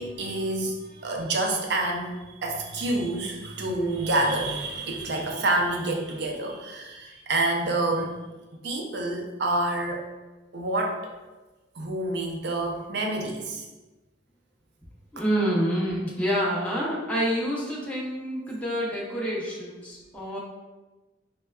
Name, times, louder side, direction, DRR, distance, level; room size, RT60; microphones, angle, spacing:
voice 1, 0.0-8.1 8.6-10.1 10.5-11.1 11.7-13.6, right 2 dB, 60° right, 1 dB, 0.5 m, -28 dB
voice 2, 15.1-20.4, equal, 5° left, -6 dB, 0.6 m, -27 dB
5.2 x 2.2 x 2.3 m, 1.2 s
head